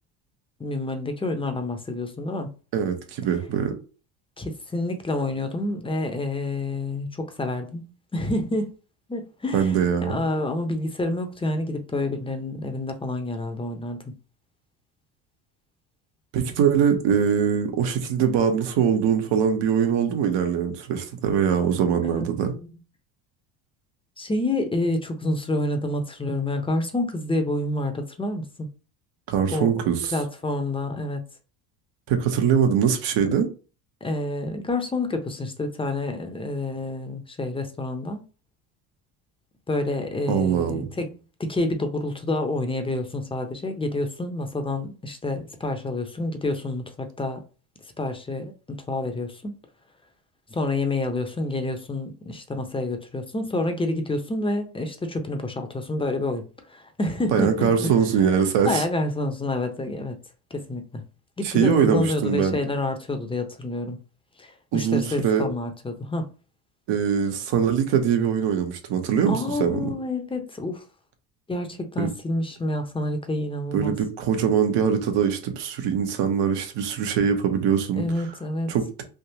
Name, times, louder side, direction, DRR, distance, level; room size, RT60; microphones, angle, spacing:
voice 1, 0.6-2.5 4.4-8.7 9.1-9.7 10.0-14.0 22.0-22.2 22.5-22.7 24.2-28.7 29.5-29.7 30.1-31.2 34.0-38.2 39.7-47.4 48.0-49.5 50.5-57.9 58.6-60.1 60.5-61.0 61.4-64.0 64.4-66.3 69.3-70.8 71.5-73.9 78.0-78.7, left 2 dB, 10° left, 0.8 m, -28 dB
voice 2, 2.7-3.8 9.5-10.1 16.3-22.5 29.3-30.1 32.1-33.5 40.3-40.9 57.3-58.8 61.4-62.6 64.7-65.5 66.9-69.9 72.0-72.1 73.7-78.1 78.7-79.0, right 7 dB, 65° right, 1.1 m, -22 dB
3.6 x 2.4 x 2.8 m
supercardioid pair, 85°, 45 cm